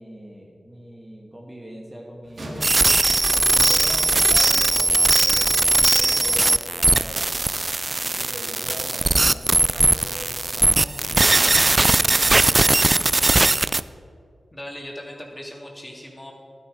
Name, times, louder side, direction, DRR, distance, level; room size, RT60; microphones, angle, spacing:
voice 1, 0.0-2.8 3.3-5.5 5.8-7.3 7.9-13.1, equal, 15° right, -2 dB, 1.7 m, -41 dB
sound 1, 2.2-4.8 8.6-12.4 12.8-13.0 13.6-13.7, equal, 65° right, 1.9 m, -43 dB
sound 2, 2.6-13.8, right 2 dB, 35° right, 0.3 m, -19 dB
voice 2, 14.5-16.3, left 1 dB, 20° left, -1 dB, 2.6 m, -38 dB
12.0 x 9.7 x 5.0 m, 2.3 s
cardioid pair, 55°, 0 cm